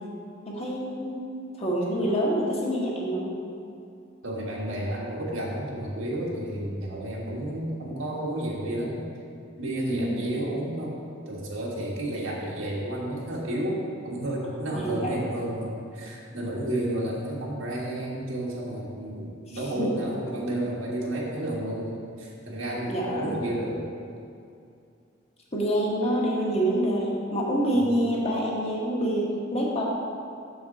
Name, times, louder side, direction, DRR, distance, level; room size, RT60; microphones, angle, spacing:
voice 1, 0.5-1.1 1.6-3.3 9.9-10.2 14.7-15.1 19.5-19.9 22.9-23.3 25.5-29.8, equal, 30° left, -4 dB, 1.2 m, -26 dB
voice 2, 4.2-9.0 9.6-10.9 11.2-23.9 27.7-27.8, right 1 dB, 90° right, -4 dB, 1.6 m, -31 dB
7.0 x 3.7 x 6.4 m, 2.5 s
head